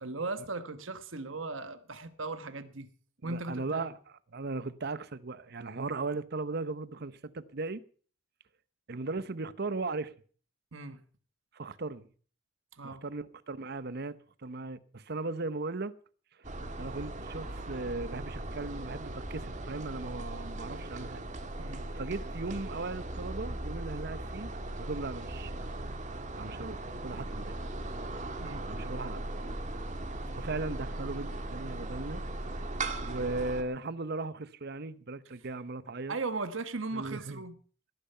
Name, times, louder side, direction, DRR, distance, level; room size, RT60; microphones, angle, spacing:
voice 1, 0.0-2.9 3.2-3.9 10.7-11.0 12.7-13.0 21.6-21.9 28.4-28.7 36.1-37.5, right 3 dB, 80° right, 1.2 m, -37 dB
voice 2, 3.2-7.8 8.9-10.1 11.5-12.1 12.8-15.9 16.8-21.2 21.9-24.5 24.8-25.7 26.4-27.6 28.7-29.2 30.3-32.2 32.5-32.6 33.0-36.2 36.9-37.4, right 3 dB, 55° right, 0.9 m, -37 dB
sound 1, 16.4-33.6, right 2 dB, 40° right, 1.9 m, -38 dB
17.5 x 10.5 x 5.6 m
head